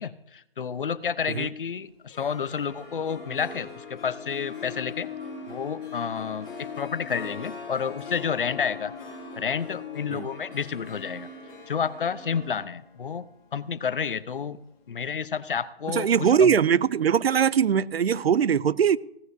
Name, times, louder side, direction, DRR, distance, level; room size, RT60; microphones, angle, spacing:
voice 1, 0.0-5.1 5.5-8.9 9.4-11.3 11.7-13.3 13.5-14.6 14.9-16.6, left 7 dB, 60° left, 0.7 m, -30 dB
Harp, 2.0-14.9, left 8 dB, 15° left, 2.1 m, -41 dB
sound 1, 2.3-12.5, right 2 dB, 20° right, 2.8 m, -47 dB
voice 2, 15.9-19.0, right 8 dB, 80° right, 0.5 m, -21 dB
16.5 x 14.0 x 2.7 m
hypercardioid pair, 160°, 30 cm